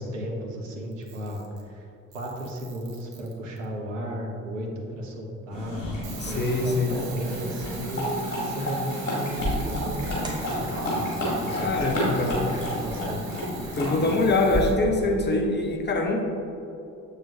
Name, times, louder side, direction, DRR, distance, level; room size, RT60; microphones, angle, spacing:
voice 1, 0.0-1.9 2.1-12.5 12.8-13.4, right 1 dB, 80° right, 0 dB, 0.9 m, -35 dB
Camera, 0.9-1.7 2.1-3.6 6.0-14.8, right 6 dB, 55° right, 1.1 m, -44 dB
sound 1, 5.5-14.1, equal, 80° left, 1.5 m, -31 dB
voice 2, 6.2-7.0 11.6-12.3 13.7-16.2, left 2 dB, 25° left, 2 dB, 1.0 m, -24 dB
sound 2, 9.4-14.6, left 1 dB, 10° right, 1.3 m, -35 dB
7.3 x 6.5 x 2.8 m, 2.8 s
figure-of-eight pair, 45°, 38 cm